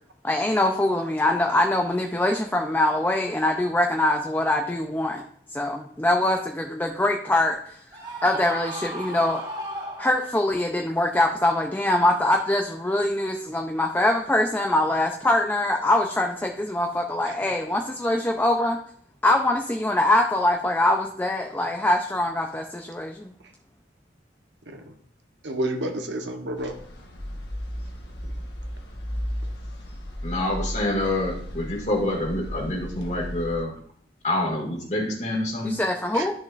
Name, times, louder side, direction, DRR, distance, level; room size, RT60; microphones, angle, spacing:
voice 1, 0.2-5.2 5.5-7.8 8.2-9.4 10.0-18.8 19.2-23.3 35.6-36.3, left 1 dB, 10° left, 2 dB, 0.6 m, -23 dB
Screaming, 7.9-10.6, right 1 dB, 25° right, 1.7 m, -35 dB
voice 2, 24.7-25.0 25.4-26.8 28.2-28.3 36.1-36.3, right 1 dB, 90° right, 5 dB, 1.1 m, -31 dB
sound 1, 26.6-33.6, equal, 70° left, 1.4 m, -35 dB
voice 3, 30.2-33.7 34.2-35.8, left 1 dB, 40° left, -1 dB, 2.1 m, -27 dB
11.0 x 6.3 x 2.5 m, 0.62 s
head